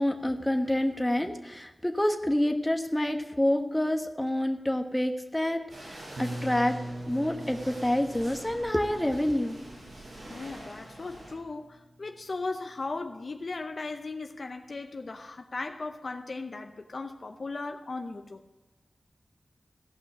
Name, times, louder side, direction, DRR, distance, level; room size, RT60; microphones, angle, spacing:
voice 1, 0.0-6.7 7.1-9.6, left 1 dB, 10° left, 4 dB, 1.2 m, -28 dB
sound 1, 5.7-11.3, right 1 dB, 90° right, 4.9 m, -46 dB
sound 2, 6.2-11.9, right 1 dB, 70° right, 0.9 m, -42 dB
voice 2, 10.3-18.4, left 3 dB, 60° left, 6 dB, 0.7 m, -37 dB
16.5 x 5.7 x 6.2 m, 1.0 s
wide cardioid pair, 65°, 0 cm